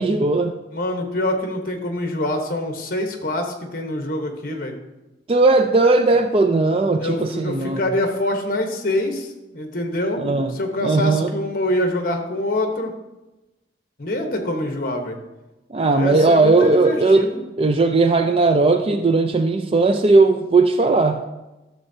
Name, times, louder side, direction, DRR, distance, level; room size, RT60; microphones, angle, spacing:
voice 1, 0.0-0.5 5.3-7.8 10.2-10.5 10.8-11.3 15.7-17.3 17.6-21.2, right 3 dB, 30° right, 7 dB, 0.4 m, -17 dB
voice 2, 0.7-4.7 7.0-12.9 14.0-15.2 15.9-17.4, left 1 dB, 50° left, 4 dB, 1.1 m, -25 dB
12.0 x 6.9 x 2.8 m, 1.0 s
head